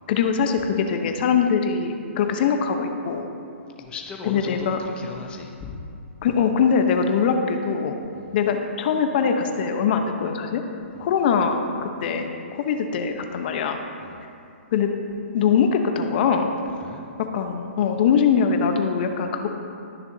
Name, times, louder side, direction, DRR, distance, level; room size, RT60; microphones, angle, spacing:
voice 1, 0.1-3.2 4.3-4.8 6.2-8.0 8.3-10.6 11.0-13.8 14.7-14.9 15.3-16.6 17.3-19.5, left 6 dB, 45° left, 5 dB, 0.9 m, -22 dB
voice 2, 3.8-5.8 8.1-8.3 10.9-11.1 14.0-14.2 16.7-17.0, left 4 dB, 15° left, 1 dB, 0.8 m, -38 dB
20.5 x 6.9 x 2.8 m, 2.5 s
hypercardioid pair, 135°, 7 cm